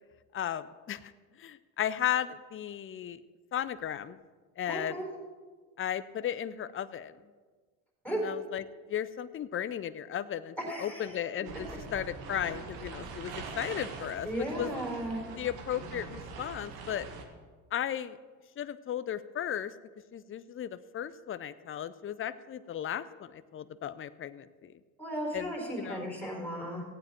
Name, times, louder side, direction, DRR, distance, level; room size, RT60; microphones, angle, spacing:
voice 1, 0.3-1.1 1.4-3.2 3.5-4.2 4.6-5.0 5.8-7.1 8.1-14.7 15.4-17.1 17.7-18.2 18.6-19.7 20.1-24.7 25.3-26.1, left 10 dB, 35° left, 13 dB, 0.6 m, -35 dB
voice 2, 4.7-5.1 8.0-8.2 10.7-11.1 14.2-15.2 25.0-26.8, right 1 dB, 5° left, -1 dB, 4.6 m, -35 dB
sound 1, 11.4-17.2, right 4 dB, 75° right, 1.6 m, -43 dB
16.0 x 8.9 x 4.4 m, 1.5 s
supercardioid pair, 80°, 37 cm